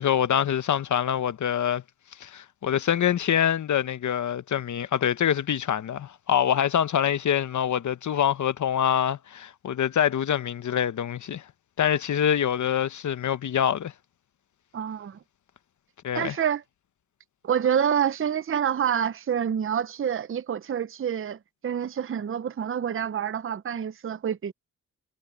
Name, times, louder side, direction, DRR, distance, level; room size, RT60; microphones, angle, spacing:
voice 1, 0.0-1.8 2.2-11.4 11.8-13.9 16.0-16.3, left 9 dB, 70° left, 1.0 m, -25 dB
voice 2, 14.7-15.2 16.1-16.6 17.4-24.5, right 8 dB, 45° right, 0.7 m, -27 dB
cardioid pair, 60°, 30 cm